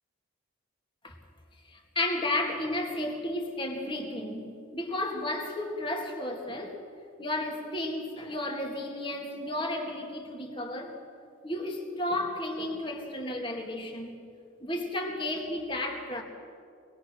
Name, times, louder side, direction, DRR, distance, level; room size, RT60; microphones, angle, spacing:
voice 1, 1.7-6.8 7.2-11.0 11.4-14.2 14.6-16.2, left 1 dB, 25° left, 2 dB, 2.5 m, -33 dB
25.0 x 20.0 x 6.4 m, 2.4 s
head